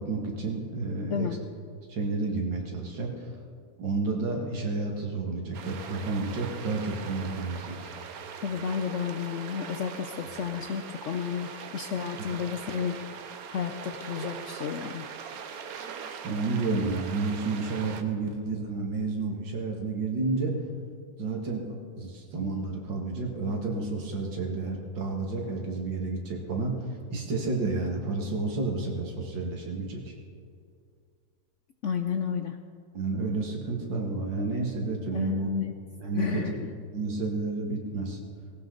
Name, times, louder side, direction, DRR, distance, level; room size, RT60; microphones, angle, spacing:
voice 1, 0.0-1.3 1.9-3.3 3.8-7.9 16.1-20.6 21.2-26.7 27.1-30.1 32.9-35.5 36.0-36.4 36.9-38.2, right 3 dB, 90° right, 0 dB, 2.7 m, -31 dB
sound 1, 5.5-18.0, right 6 dB, 60° right, 1.2 m, -41 dB
voice 2, 8.4-13.0 13.5-15.0 31.8-32.6 35.1-35.8 36.2-36.7, left 7 dB, 70° left, 7 dB, 0.7 m, -31 dB
18.0 x 17.0 x 4.0 m, 2.3 s
omnidirectional pair, 1.9 m